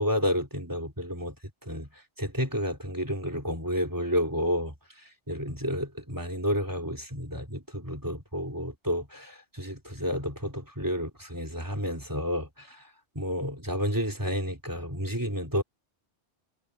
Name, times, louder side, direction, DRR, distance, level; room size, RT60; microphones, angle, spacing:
voice 1, 0.0-1.3 1.7-1.9 2.2-4.7 5.3-12.8 13.1-15.6, equal, 15° right, 3.3 m, -30 dB
omnidirectional pair, 1.2 m